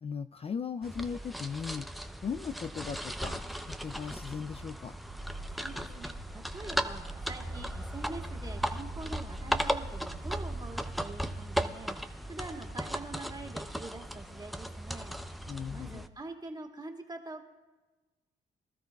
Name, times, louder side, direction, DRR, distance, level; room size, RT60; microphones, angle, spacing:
voice 1, 0.0-1.9 2.2-4.9 15.5-16.0, left 6 dB, 30° left, 11 dB, 0.3 m, -38 dB
sound 1, 0.8-16.1, equal, ahead, 0.7 m, -37 dB
sound 2, 5.1-11.6, right 9 dB, 60° right, 0.7 m, -51 dB
voice 2, 5.5-17.4, right 2 dB, 20° right, 1 dB, 2.0 m, -45 dB
24.0 x 13.0 x 2.3 m, 1.2 s
cardioid pair, 80°, 19 cm